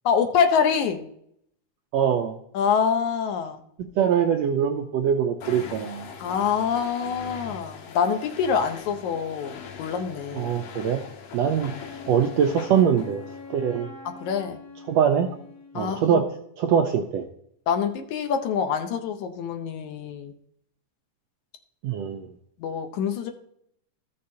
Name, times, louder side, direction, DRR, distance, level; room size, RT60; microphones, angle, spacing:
voice 1, 0.1-1.0 2.5-3.6 6.2-10.5 14.1-14.6 15.8-16.2 17.7-20.3 22.6-23.3, left 6 dB, 75° left, 6 dB, 2.1 m, -25 dB
voice 2, 1.9-2.4 4.0-6.1 10.3-11.0 11.3-11.7 12.1-13.2 13.5-13.9 14.9-15.3 15.7-16.3 16.6-17.3 21.8-22.3, right 8 dB, 90° right, 4 dB, 1.5 m, -23 dB
sound 1, 5.4-13.6, left 7 dB, 90° left, 2.7 m, -41 dB
Wind instrument woodwind instrument, 11.7-16.1, left 4 dB, 30° left, 1.2 m, -43 dB
14.5 x 6.5 x 2.8 m, 0.71 s
omnidirectional pair, 3.6 m